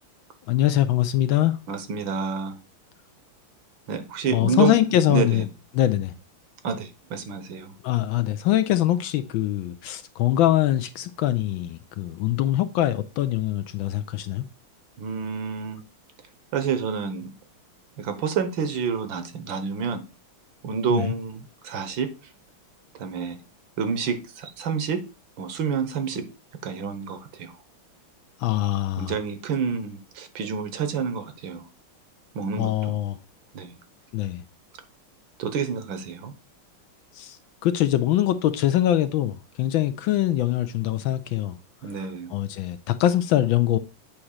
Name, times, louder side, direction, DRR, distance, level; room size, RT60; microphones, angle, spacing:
voice 1, 0.5-1.6 4.3-5.5 5.7-6.1 7.8-14.4 20.9-21.1 28.4-29.2 32.6-33.2 34.1-34.4 37.1-37.4 37.6-41.6 42.0-43.8, left 13 dB, 75° left, 1.2 m, -23 dB
voice 2, 1.7-2.6 3.9-4.8 5.1-5.4 6.6-7.7 15.0-15.8 16.5-17.3 18.0-20.0 20.6-22.1 23.0-23.4 23.8-25.0 25.4-26.2 26.6-27.5 29.0-31.7 32.3-32.9 33.5-33.8 35.4-36.3 41.8-42.3, right 6 dB, 65° right, 1.6 m, -28 dB
8.6 x 3.0 x 6.4 m
omnidirectional pair, 2.4 m